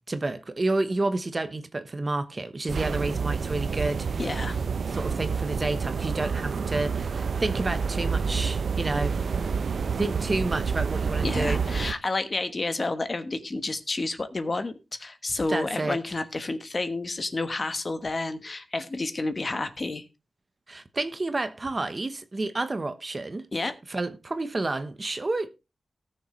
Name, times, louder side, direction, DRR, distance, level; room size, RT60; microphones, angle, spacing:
voice 1, 0.1-4.2 4.9-9.1 10.0-11.6 15.5-16.0 20.7-23.5 23.9-25.5, right 2 dB, 35° right, 1.1 m, -30 dB
sound 1, 2.7-11.9, right 5 dB, 75° right, 0.6 m, -28 dB
voice 2, 4.2-4.6 11.2-14.7 15.0-20.0 23.5-23.7, left 2 dB, 35° left, 1.2 m, -30 dB
18.5 x 6.7 x 3.2 m
wide cardioid pair, 125°, 0 cm